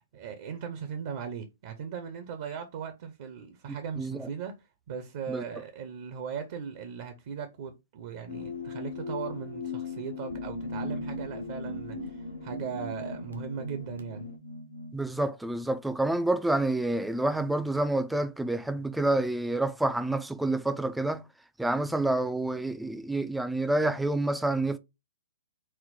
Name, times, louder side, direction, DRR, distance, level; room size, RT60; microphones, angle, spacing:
voice 1, 0.0-4.5 4.9-14.3, right 7 dB, 50° right, 0.6 m, -38 dB
voice 2, 4.0-4.3 5.3-5.4 14.9-21.2 21.6-24.8, right 2 dB, 5° right, 0.3 m, -28 dB
sound 1, 8.3-14.4, left 4 dB, 70° left, 0.7 m, -38 dB
sound 2, 10.2-15.1, right 2 dB, 85° right, 0.9 m, -43 dB
4.2 x 2.0 x 3.9 m
figure-of-eight pair, 120°, 0 cm